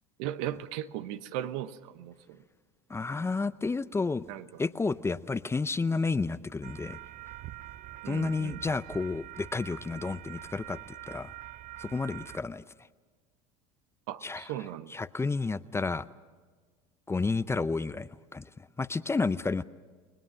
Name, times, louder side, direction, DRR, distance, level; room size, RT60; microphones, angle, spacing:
voice 1, 0.2-2.2 3.0-3.1 4.3-4.4 8.0-8.6 14.1-14.9, right 12 dB, 70° right, 1.1 m, -37 dB
voice 2, 2.9-4.2 4.6-7.0 8.0-10.8 11.1-11.3 11.8-12.6 14.2-14.5 14.9-16.0 17.1-19.6, left 4 dB, 15° left, 0.6 m, -31 dB
sound 1, 6.6-12.4, right 15 dB, 50° right, 0.6 m, -45 dB
30.0 x 20.0 x 6.3 m
hypercardioid pair, 85°, 18 cm